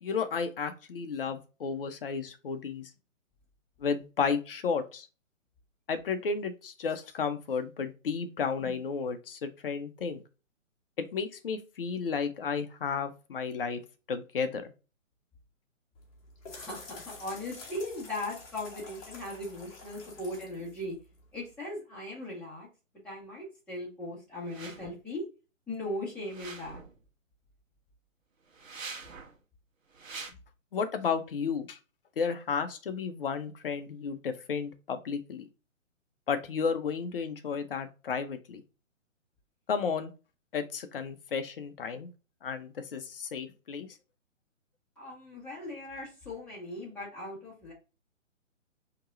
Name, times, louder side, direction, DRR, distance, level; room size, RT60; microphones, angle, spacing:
voice 1, 0.0-2.9 3.8-5.1 5.9-10.2 11.0-13.8 14.1-14.7 30.7-31.8 32.2-35.5 36.3-38.6 39.7-40.1 40.5-42.1 42.4-43.9, left 5 dB, 45° left, 9 dB, 0.7 m, -33 dB
sound 1, 16.0-21.5, left 3 dB, 30° left, 1.3 m, -49 dB
voice 2, 16.5-20.9 21.3-22.7 23.0-25.2 25.7-26.8 45.0-47.7, left 1 dB, 5° left, -8 dB, 1.6 m, -38 dB
sound 2, 24.4-25.0 26.2-27.0 28.5-29.4 29.9-30.3, right 4 dB, 75° right, 1.1 m, -44 dB
4.5 x 2.9 x 2.5 m, 0.32 s
figure-of-eight pair, 140°, 40 cm